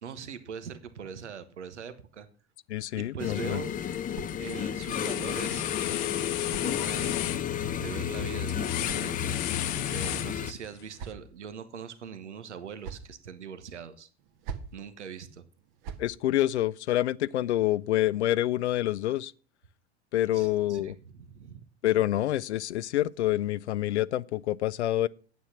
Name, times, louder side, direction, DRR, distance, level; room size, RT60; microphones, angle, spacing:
voice 1, 0.0-2.3 2.9-4.0 4.4-9.6 9.9-14.1 14.7-15.4 20.3-21.6, right 7 dB, 85° right, 1.2 m, -42 dB
voice 2, 2.7-3.6 16.0-19.3 20.1-21.0 21.8-25.1, left 14 dB, 75° left, 0.6 m, -27 dB
sound 1, 3.2-10.5, left 9 dB, 25° left, 0.7 m, -32 dB
sound 2, 3.6-4.0 4.3-10.8, left 15 dB, 55° left, 1.0 m, -35 dB
sound 3, 3.7-4.9 5.9-7.3 8.3-9.7 10.5-11.5 12.5-13.2 14.2-14.8 15.6-16.1, right 6 dB, 55° right, 1.6 m, -45 dB
9.4 x 8.4 x 5.9 m
hypercardioid pair, 90°, 34 cm